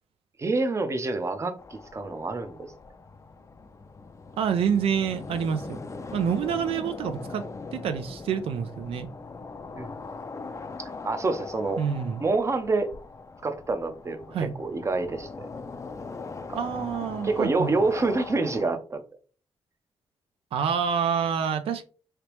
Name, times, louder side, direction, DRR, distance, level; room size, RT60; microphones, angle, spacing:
voice 1, 0.4-1.6 1.9-2.7 9.8-9.9 10.8-11.8 12.2-12.9 13.4-15.5 16.5-16.6 17.2-19.0, right 3 dB, 30° right, 0.6 m, -27 dB
sound 1, 1.6-18.7, left 4 dB, 30° left, 0.4 m, -40 dB
voice 2, 4.4-5.8 6.1-7.4 7.7-9.1 11.8-12.2 14.3-14.5 16.6-17.7 20.5-21.8, right 7 dB, 75° right, 0.4 m, -27 dB
3.3 x 2.9 x 3.0 m
cardioid pair, 75°, 10 cm